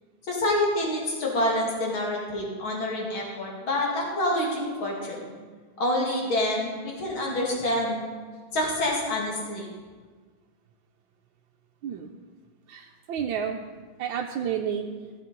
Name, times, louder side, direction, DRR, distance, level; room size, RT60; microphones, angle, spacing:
voice 1, 0.2-5.3 5.8-8.0 8.5-9.7, left 1 dB, 75° left, -2 dB, 3.1 m, -27 dB
voice 2, 12.7-13.7 14.0-14.9, right 8 dB, 75° right, 1 dB, 1.4 m, -30 dB
15.0 x 7.5 x 5.3 m, 1.5 s
omnidirectional pair, 2.2 m